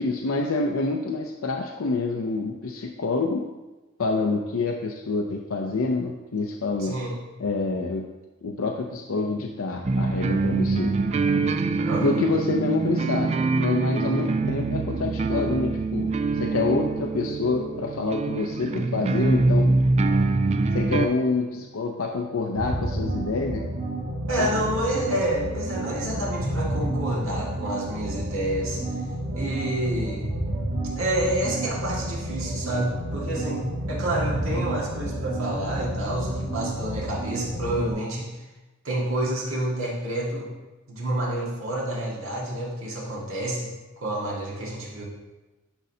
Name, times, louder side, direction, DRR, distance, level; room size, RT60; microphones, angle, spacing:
voice 1, 0.0-3.5 4.0-7.0 7.4-8.1 8.4-11.0 12.0-19.7 20.7-23.7 24.4-24.6, left 3 dB, 85° left, 3 dB, 0.5 m, -27 dB
voice 2, 6.8-7.2 11.9-12.1 24.3-28.8 29.4-30.3 31.0-38.3 38.8-40.5 40.9-43.7 44.0-45.0, right 1 dB, 75° right, -3 dB, 1.8 m, -28 dB
sound 1, 9.8-21.1, right 3 dB, 30° right, 0.3 m, -24 dB
sound 2, 22.6-37.9, right 1 dB, 55° right, 2.5 m, -30 dB
10.5 x 5.3 x 2.7 m, 1.1 s
head